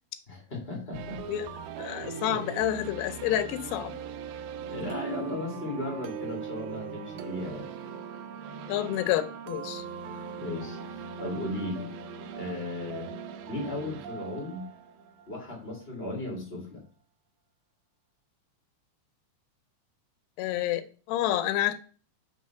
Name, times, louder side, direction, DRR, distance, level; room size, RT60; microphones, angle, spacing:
voice 1, 0.3-1.4 2.3-2.4 4.7-7.7 10.4-11.9 12.3-14.7 15.3-16.8, left 1 dB, 45° left, 0.7 m, -36 dB
sound 1, 0.9-15.8, right 6 dB, 80° right, 2.3 m, -40 dB
voice 2, 1.8-4.0 8.7-9.8 20.4-21.7, left 12 dB, 90° left, 2.7 m, -29 dB
6.3 x 3.1 x 5.5 m
omnidirectional pair, 4.6 m